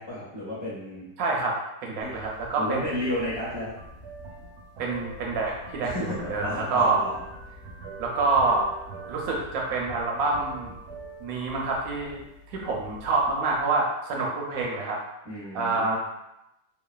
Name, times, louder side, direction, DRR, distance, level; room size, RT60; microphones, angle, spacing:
voice 1, 0.0-1.1 2.0-2.1 2.6-3.8 5.8-7.1 15.2-16.0, left 1 dB, 20° left, -10 dB, 0.8 m, -32 dB
voice 2, 1.2-2.9 4.8-7.0 8.0-8.7 9.1-10.7 11.2-12.2 12.5-15.0 15.5-16.0, right 3 dB, 70° right, -2 dB, 0.9 m, -27 dB
sound 1, 2.0-13.6, right 1 dB, 85° right, 1.2 m, -43 dB
3.1 x 2.0 x 2.2 m, 0.88 s
omnidirectional pair, 1.8 m